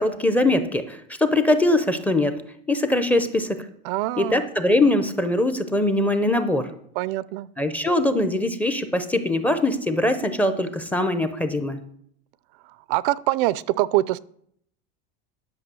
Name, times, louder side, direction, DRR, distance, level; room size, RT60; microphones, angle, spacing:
voice 1, 0.0-2.4 2.7-3.6 4.2-6.7 7.6-11.8, left 1 dB, 5° left, 9 dB, 0.6 m, -22 dB
voice 2, 3.8-4.4 7.0-7.5 12.9-14.2, right 16 dB, 65° right, 19 dB, 0.5 m, -24 dB
10.5 x 5.9 x 7.6 m, 0.68 s
cardioid pair, 165°, 30 cm